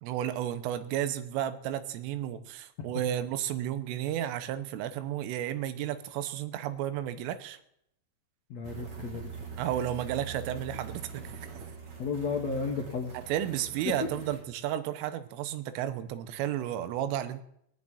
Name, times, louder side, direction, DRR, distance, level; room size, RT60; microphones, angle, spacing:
voice 1, 0.0-7.6 9.6-11.3 13.3-17.4, right 11 dB, 85° right, 12 dB, 3.5 m, -32 dB
voice 2, 8.5-9.4 12.0-13.2, left 5 dB, 75° left, 1 dB, 1.5 m, -33 dB
sound 1, 8.6-14.4, right 6 dB, 45° right, 2.8 m, -43 dB
18.0 x 7.4 x 9.7 m, 0.76 s
omnidirectional pair, 5.6 m